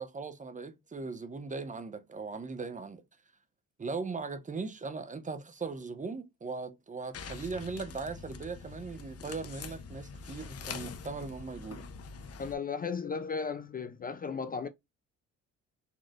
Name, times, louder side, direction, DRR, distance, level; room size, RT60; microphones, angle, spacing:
voice 1, 0.0-3.0 3.8-11.9, right 4 dB, 25° right, 0.7 m, -39 dB
sound 1, 7.1-12.5, left 5 dB, 50° left, 0.8 m, -44 dB
voice 2, 12.4-14.7, left 5 dB, 30° left, 0.4 m, -35 dB
4.3 x 3.0 x 2.5 m
cardioid pair, 90°, 30 cm